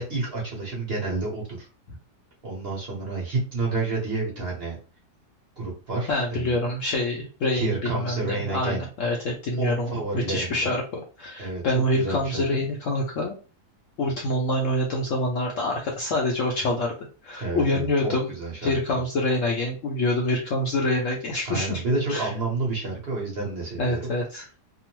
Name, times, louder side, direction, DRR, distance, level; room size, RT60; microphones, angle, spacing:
voice 1, 0.0-1.7 2.4-4.8 5.6-6.5 7.5-8.8 9.6-10.7 11.4-11.6 11.9-12.6 17.4-18.8 21.4-24.0, right 3 dB, 45° right, -3 dB, 0.9 m, -29 dB
voice 2, 6.1-10.8 11.2-13.4 14.0-16.9 17.2-18.3 18.6-21.8 22.1-22.3 23.8-24.4, left 1 dB, 65° left, -1 dB, 0.8 m, -26 dB
2.9 x 2.0 x 3.0 m, 0.35 s
omnidirectional pair, 1.8 m